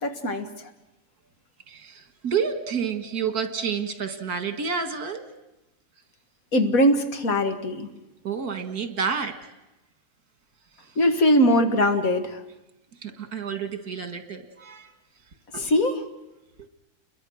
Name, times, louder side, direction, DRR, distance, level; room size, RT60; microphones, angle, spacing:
voice 1, 0.0-0.7 6.5-7.9 11.0-12.4 15.5-16.0, equal, 60° left, 6 dB, 2.2 m, -21 dB
voice 2, 1.7-5.3 8.2-9.5 10.8-10.9 13.0-14.9 15.5-15.8 16.6-16.7, right 6 dB, 75° right, 8 dB, 2.2 m, -30 dB
29.5 x 22.0 x 6.3 m, 0.97 s
omnidirectional pair, 1.6 m